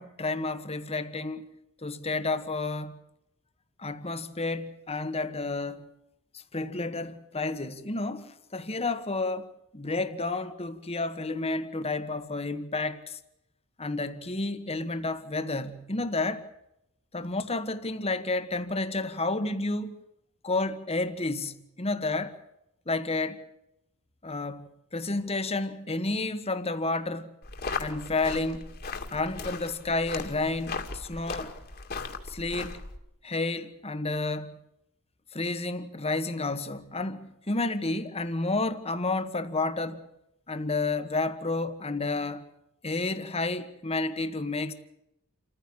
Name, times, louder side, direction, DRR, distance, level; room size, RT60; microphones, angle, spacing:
voice 1, 0.0-1.5 1.8-3.0 3.8-5.8 6.5-9.5 9.7-13.2 13.8-16.5 17.1-20.0 20.4-22.4 22.9-23.4 24.2-27.3 27.8-28.7 29.1-31.5 32.3-32.8 33.2-34.5 35.3-40.0 40.5-42.4 42.8-44.7, left 3 dB, 30° left, 1.5 m, -31 dB
sound 1, 27.4-33.0, left 4 dB, 45° left, 2.3 m, -37 dB
28.5 x 15.0 x 8.7 m
head